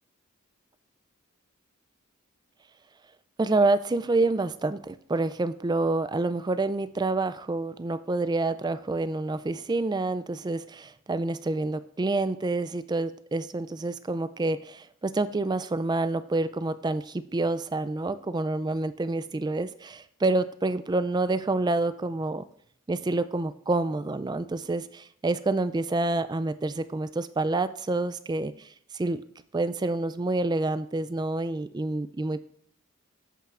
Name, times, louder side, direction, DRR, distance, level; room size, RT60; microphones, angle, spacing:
voice 1, 3.4-22.4 22.9-29.2 29.5-32.4, right 2 dB, 20° right, 13 dB, 0.3 m, -28 dB
13.5 x 5.5 x 2.5 m, 0.65 s
head